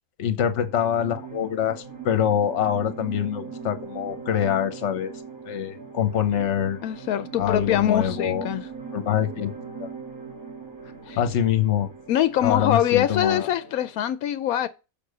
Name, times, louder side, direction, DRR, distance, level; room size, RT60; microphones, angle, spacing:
voice 1, 0.2-5.1 5.5-6.8 7.4-8.5 8.9-9.5 9.8-9.9 11.2-11.9 12.4-13.5, left 9 dB, 55° left, 1.2 m, -24 dB
sound 1, 0.7-14.0, right 5 dB, 80° right, 2.3 m, -40 dB
voice 2, 6.8-8.6 11.1-11.2 12.1-14.7, left 11 dB, 85° left, 1.1 m, -23 dB
6.7 x 5.2 x 6.5 m
omnidirectional pair, 1.5 m